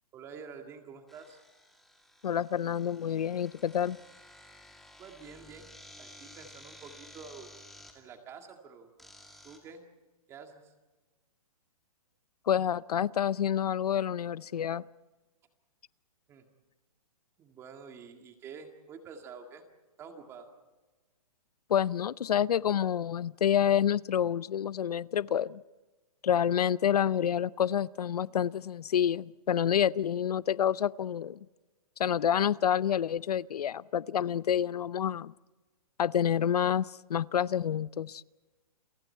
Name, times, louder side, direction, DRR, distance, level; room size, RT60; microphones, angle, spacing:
voice 1, 0.1-1.4 5.0-7.5 7.9-8.9 9.4-9.8 10.3-10.7 16.3-16.5 17.4-19.6 20.0-20.5, right 6 dB, 15° right, 5 dB, 2.0 m, -48 dB
sound 1, 1.1-7.9 9.0-9.6, left 1 dB, ahead, 2.2 m, -54 dB
voice 2, 2.2-4.0 12.5-14.8 21.7-25.6 26.2-31.4 32.0-35.3 36.0-38.2, left 9 dB, 90° left, 20 dB, 0.6 m, -28 dB
30.0 x 24.0 x 4.5 m, 1.2 s
hypercardioid pair, 165°, 19 cm